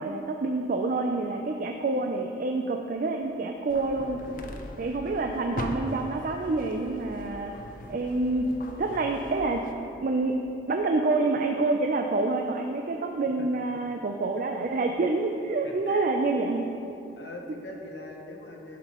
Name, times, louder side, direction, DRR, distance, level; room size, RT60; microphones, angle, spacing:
voice 1, 0.0-4.2 4.8-7.5 7.9-8.5 8.8-9.7 10.0-10.3 10.7-16.9, right 3 dB, 50° right, 3 dB, 0.4 m, -27 dB
sound 1, 3.7-9.7, left 1 dB, 50° left, 0.5 m, -40 dB
voice 2, 4.3-4.6 15.6-16.1 17.2-18.8, left 2 dB, 80° left, 2 dB, 0.9 m, -42 dB
11.5 x 5.9 x 3.0 m, 2.8 s
head